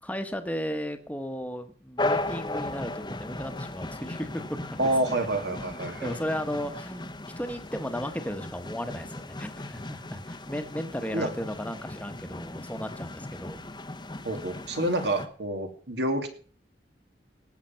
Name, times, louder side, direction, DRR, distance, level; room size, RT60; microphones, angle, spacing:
voice 1, 0.0-4.6 6.0-13.6, equal, 10° left, 7 dB, 1.2 m, -35 dB
sound 1, 2.0-15.3, left 2 dB, 25° left, 0.9 m, -36 dB
voice 2, 4.8-6.2 11.1-11.3 14.2-16.3, right 1 dB, 70° right, 5 dB, 2.4 m, -28 dB
18.5 x 7.5 x 5.7 m, 0.42 s
head